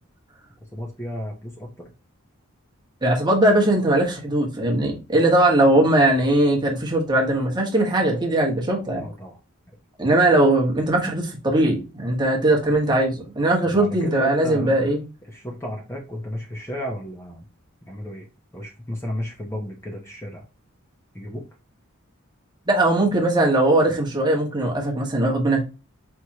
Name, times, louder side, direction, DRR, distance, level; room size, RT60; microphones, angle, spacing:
voice 1, 0.7-1.9 9.0-9.4 13.6-14.8 15.3-17.5 17.9-18.3 18.5-20.5 21.1-21.5, equal, 10° left, 0.8 m, -33 dB
voice 2, 3.0-9.1 10.0-15.0 22.7-25.6, right 1 dB, 20° right, 1.3 m, -20 dB
4.7 x 3.5 x 2.9 m
head